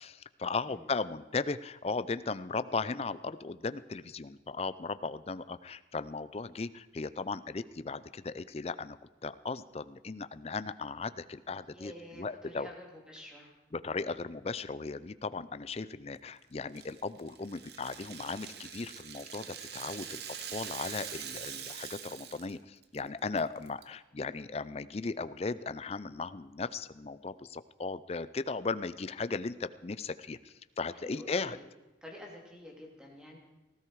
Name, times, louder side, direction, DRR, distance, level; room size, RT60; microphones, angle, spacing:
voice 1, 0.0-9.0 9.2-11.9 12.2-12.7 13.7-20.2 20.5-31.6, left 4 dB, 35° left, 14 dB, 0.5 m, -37 dB
voice 2, 11.7-13.5 30.9-31.6 32.0-33.4, left 1 dB, 5° right, -1 dB, 2.8 m, -49 dB
Rattle (instrument), 16.7-22.6 22.8-23.0 23.4-23.8, right 8 dB, 60° right, 1.2 m, -44 dB
18.0 x 16.0 x 4.7 m, 1.1 s
head